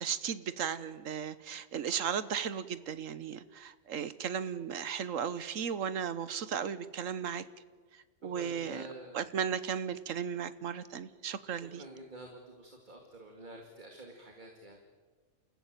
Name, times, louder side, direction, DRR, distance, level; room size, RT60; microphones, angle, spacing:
voice 1, 0.0-7.4 8.2-8.8 9.1-11.8, right 7 dB, 90° right, 14 dB, 1.4 m, -35 dB
voice 2, 8.3-9.2 11.8-14.8, right 1 dB, 35° right, 2 dB, 2.4 m, -48 dB
28.5 x 15.0 x 9.0 m, 1.5 s
omnidirectional pair, 1.3 m